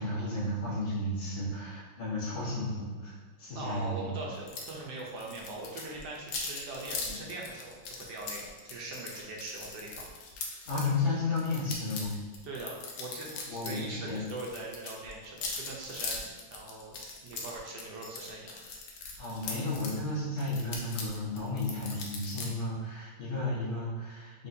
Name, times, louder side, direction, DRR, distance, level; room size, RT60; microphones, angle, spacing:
voice 1, 0.0-3.1 3.4-4.1 7.1-7.2 8.7-8.8 10.7-12.2 13.5-14.2 19.2-24.5, left 2 dB, 30° left, -10 dB, 1.5 m, -33 dB
voice 2, 3.5-10.1 12.4-18.6, right 2 dB, 70° right, -2 dB, 1.2 m, -41 dB
sound 1, 4.5-4.7 5.0-10.9 11.4-13.8 14.1-20.0 20.4-22.5, left 4 dB, 65° left, 0.9 m, -40 dB
4.1 x 3.6 x 2.7 m, 1.4 s
omnidirectional pair, 2.0 m